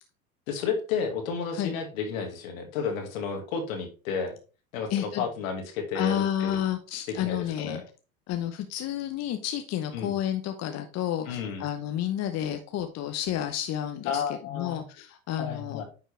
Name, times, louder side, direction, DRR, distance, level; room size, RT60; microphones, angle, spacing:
voice 1, 0.5-4.4 4.7-6.6 7.2-7.8 9.9-10.1 11.3-11.7 14.1-14.8 15.4-15.8, left 6 dB, 70° left, 4 dB, 2.2 m, -32 dB
voice 2, 4.9-5.2 5.9-7.8 8.3-14.2 14.5-15.8, left 10 dB, 40° left, 7 dB, 0.9 m, -30 dB
9.4 x 4.4 x 3.3 m, 0.35 s
hypercardioid pair, 90°, 42 cm